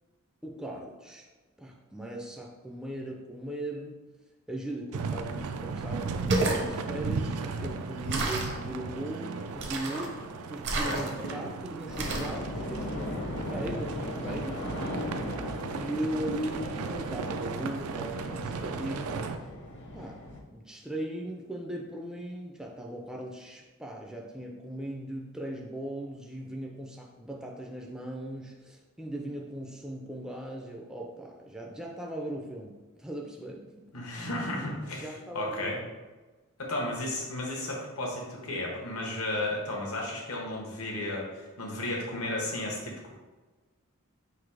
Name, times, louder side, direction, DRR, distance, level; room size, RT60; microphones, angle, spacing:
voice 1, 0.4-1.3 1.6-4.0 4.5-13.2 13.5-14.9 15.4-19.2 19.9-33.9 35.0-35.7, right 1 dB, 5° right, 0 dB, 0.3 m, -38 dB
sound 1, 4.9-19.4, right 4 dB, 85° right, 0.4 m, -36 dB
water sounds, 6.1-6.6 8.1-8.6 9.6-10.1 10.6-11.3 12.0-12.4, right 2 dB, 55° right, 0.7 m, -30 dB
sound 2, 11.9-20.4, left 1 dB, 55° left, 0.8 m, -38 dB
voice 2, 33.9-35.1 35.3-35.8 36.6-43.1, left 1 dB, 80° left, -1 dB, 1.1 m, -33 dB
3.9 x 2.7 x 4.7 m, 1.3 s
head